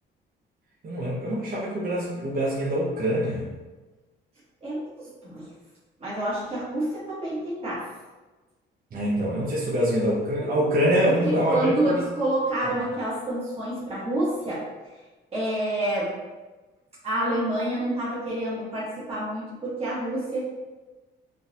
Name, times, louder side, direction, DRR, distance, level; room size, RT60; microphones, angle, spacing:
voice 1, 0.8-3.5 8.9-12.0, equal, 45° right, -6 dB, 0.8 m, -24 dB
voice 2, 4.6-5.5 6.0-7.8 11.1-14.6 15.3-16.2 17.0-20.4, right 1 dB, 30° right, -9 dB, 1.2 m, -28 dB
3.8 x 2.5 x 2.8 m, 1.2 s
cardioid pair, 90°, 20 cm